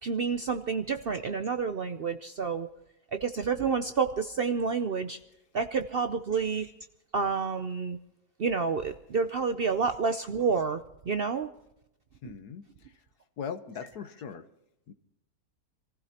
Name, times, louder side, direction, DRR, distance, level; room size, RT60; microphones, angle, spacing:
voice 1, 0.0-2.7 3.1-5.2 5.5-6.7 7.1-8.0 8.4-11.5 12.2-12.3, right 5 dB, 55° right, 8 dB, 0.6 m, -29 dB
voice 2, 12.2-12.9 13.4-14.5 14.9-15.0, left 7 dB, 80° left, 10 dB, 1.6 m, -40 dB
27.5 x 15.5 x 2.9 m, 0.85 s
omnidirectional pair, 1.7 m